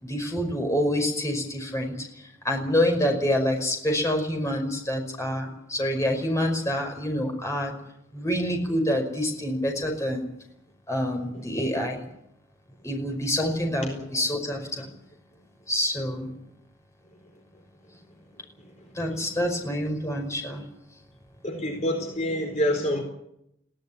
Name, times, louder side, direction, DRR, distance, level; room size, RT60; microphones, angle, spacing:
voice 1, 0.0-2.1 2.4-7.7 8.1-10.3 10.9-12.0 12.8-14.9 15.7-16.3 19.0-20.6, equal, 15° left, 3 dB, 5.3 m, -27 dB
voice 2, 11.3-11.6 14.1-14.2 19.0-19.2 21.4-23.0, equal, 35° left, 3 dB, 4.3 m, -28 dB
20.5 x 17.0 x 9.9 m, 0.77 s
head